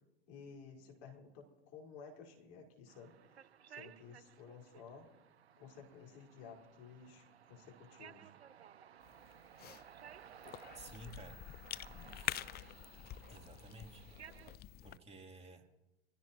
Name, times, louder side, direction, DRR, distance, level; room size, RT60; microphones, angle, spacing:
voice 1, 0.3-5.1 5.6-8.3 10.4-10.6, left 6 dB, 60° left, -1 dB, 5.1 m, -55 dB
sound 1, 2.9-14.6, right 9 dB, 90° right, 0.7 m, -58 dB
sound 2, 8.3-14.5, right 8 dB, 45° right, 6.2 m, -72 dB
Cough / Chewing mastication, 9.0-15.0, left 13 dB, 30° left, 0.6 m, -47 dB
voice 2, 10.7-11.4 13.3-14.0 14.8-15.6, right 2 dB, 20° right, 2 dB, 3.5 m, -53 dB
26.0 x 17.0 x 3.1 m, 1.0 s
hypercardioid pair, 80°, 31 cm